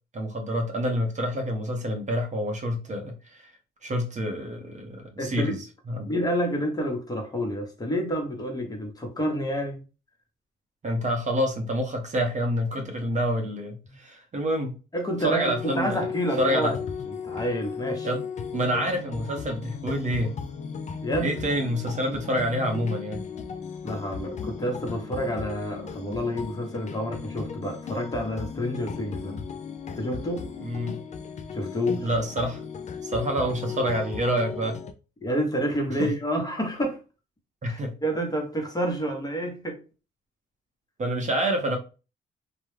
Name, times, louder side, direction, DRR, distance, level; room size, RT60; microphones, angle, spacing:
voice 1, 0.1-3.5 3.8-6.1 10.8-14.8 15.2-16.0 16.4-16.8 18.0-18.3 18.5-20.3 21.2-23.2 30.6-31.0 32.0-32.6 33.0-34.8 36.0-36.1 37.6-38.0 41.0-41.8, equal, 35° right, 0.7 m, -27 dB
voice 2, 5.2-5.6 6.1-9.8 14.9-16.8 17.2-18.1 21.0-21.3 23.8-29.4 30.0-30.5 31.5-32.1 35.2-37.0 37.6-39.8, equal, 20° left, 0.8 m, -29 dB
sound 1, 15.4-34.9, left 6 dB, 35° left, 0.4 m, -36 dB
2.2 x 2.0 x 3.1 m
cardioid pair, 90°, 20 cm